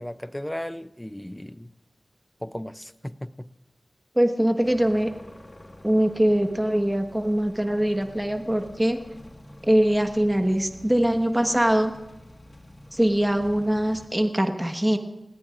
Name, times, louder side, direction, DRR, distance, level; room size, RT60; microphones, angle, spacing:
voice 1, 0.0-1.7 2.4-3.5, left 1 dB, 10° left, 0.5 m, -35 dB
voice 2, 4.1-5.1 5.8-9.0 9.6-11.9 12.9-15.0, right 1 dB, 10° right, 1.3 m, -22 dB
sound 1, 4.6-14.1, left 1 dB, 35° left, 1.6 m, -47 dB
29.5 x 17.5 x 2.5 m
wide cardioid pair, 75°, 0 cm